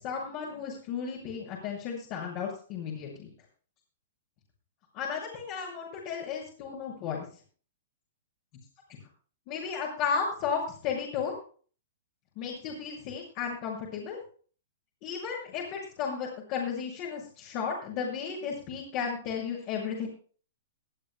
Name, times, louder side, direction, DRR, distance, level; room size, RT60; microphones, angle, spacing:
voice 1, 0.0-3.3 4.9-7.2 9.5-11.4 12.4-14.2 15.0-20.1, left 6 dB, 40° left, -2 dB, 6.8 m, -34 dB
22.0 x 12.5 x 2.3 m, 0.41 s
hypercardioid pair, 115°, 0 cm